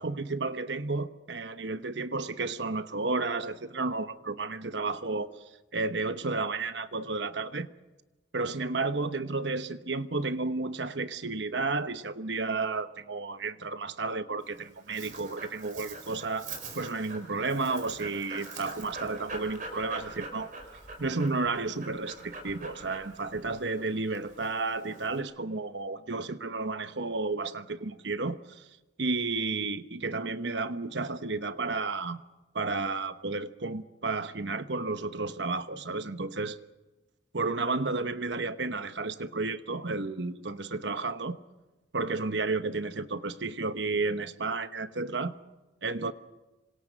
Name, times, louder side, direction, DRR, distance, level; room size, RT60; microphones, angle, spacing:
voice 1, 0.0-5.4 5.7-7.7 8.3-20.5 21.0-28.7 29.0-32.2 32.5-36.6 37.3-41.4 41.9-45.3 45.8-46.1, right 3 dB, 75° right, 1.1 m, -32 dB
Dog, 14.4-25.2, right 3 dB, 45° right, 4.9 m, -44 dB
27.0 x 25.5 x 5.3 m
head